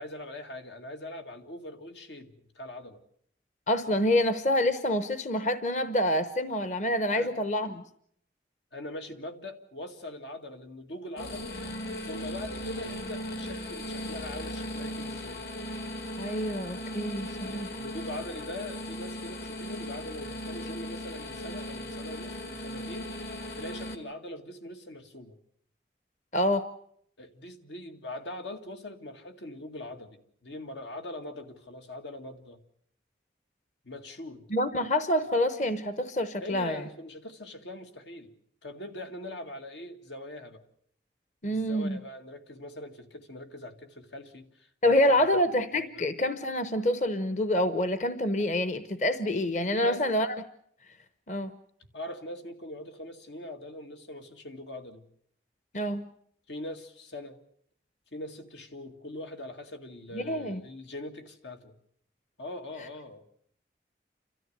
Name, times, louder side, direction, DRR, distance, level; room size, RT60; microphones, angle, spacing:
voice 1, 0.0-3.0 7.1-7.3 8.7-11.5 12.0-15.4 17.4-25.4 27.2-32.6 33.8-34.4 36.4-38.3 38.6-40.6 41.5-45.4 45.9-46.1 49.7-50.0 51.9-55.0 56.5-57.4 58.1-61.7 62.4-63.2, left 1 dB, 90° left, 6 dB, 2.2 m, -42 dB
voice 2, 3.7-7.8 16.2-17.7 26.3-26.7 34.5-36.8 41.4-42.0 44.8-50.3 51.3-51.5 55.7-56.0 60.1-60.6, left 1 dB, 45° left, 11 dB, 0.9 m, -27 dB
sound 1, 11.2-24.0, left 1 dB, 65° left, 2.2 m, -37 dB
30.0 x 13.5 x 8.0 m, 0.66 s
head